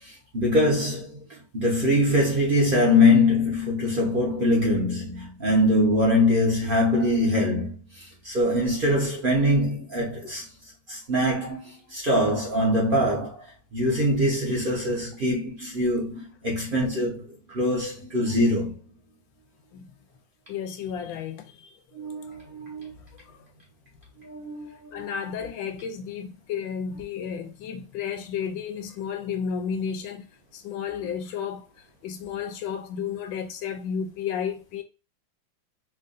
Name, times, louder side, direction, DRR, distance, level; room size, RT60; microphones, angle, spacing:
voice 1, 0.3-1.2 1.5-7.7 8.2-10.4 10.9-13.4 13.7-18.7 21.9-22.9 24.2-25.1, left 1 dB, 50° right, 0.6 m, -23 dB
voice 2, 20.5-21.7 23.2-23.4 24.9-30.3 30.5-34.8, left 7 dB, 75° left, 1.2 m, -32 dB
4.7 x 2.5 x 2.5 m
omnidirectional pair, 2.4 m